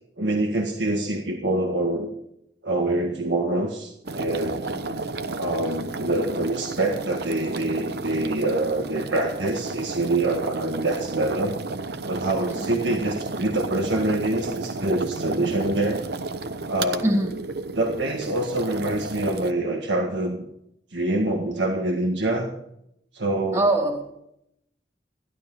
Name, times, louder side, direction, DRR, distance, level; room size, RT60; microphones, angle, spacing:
voice 1, 0.2-2.1 2.6-4.6 5.4-11.6 12.1-16.0 16.7-17.0 17.8-20.4 20.9-22.5 23.1-23.6, right 2 dB, 90° right, 1 dB, 1.7 m, -25 dB
sound 1, 4.0-19.5, right 3 dB, 65° right, 0.8 m, -32 dB
voice 2, 4.6-5.0 12.5-12.8 17.0-17.3 23.5-24.0, right 1 dB, 25° right, 2 dB, 2.3 m, -24 dB
15.0 x 11.5 x 5.6 m, 0.78 s
head